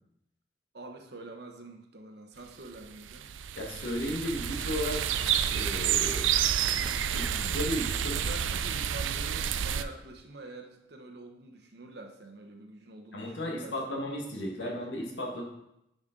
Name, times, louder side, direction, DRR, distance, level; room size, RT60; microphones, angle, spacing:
voice 1, 0.7-3.3 8.1-14.0 14.6-14.9, right 2 dB, 55° right, 4 dB, 1.0 m, -46 dB
sound 1, 2.8-9.8, right 9 dB, 85° right, 0.4 m, -29 dB
voice 2, 3.5-5.2 5.5-6.3 7.1-8.2 13.1-15.4, left 1 dB, 75° left, 0 dB, 1.7 m, -34 dB
sound 2, 6.5-10.2, equal, 5° left, 0.9 m, -48 dB
10.5 x 5.2 x 3.8 m, 0.83 s
head